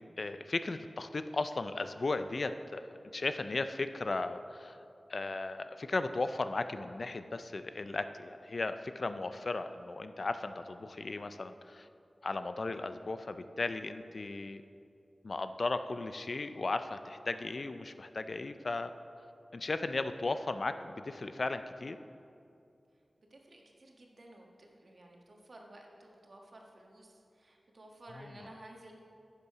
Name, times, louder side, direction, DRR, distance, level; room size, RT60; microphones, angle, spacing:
voice 1, 0.2-4.8 5.1-11.9 12.2-14.6 15.2-18.9 19.5-22.0 28.2-28.3, left 3 dB, 60° left, 10 dB, 0.4 m, -36 dB
voice 2, 23.3-28.9, right 1 dB, 60° right, 0 dB, 1.4 m, -54 dB
10.5 x 6.8 x 5.6 m, 2.6 s
wide cardioid pair, 65°, 0 cm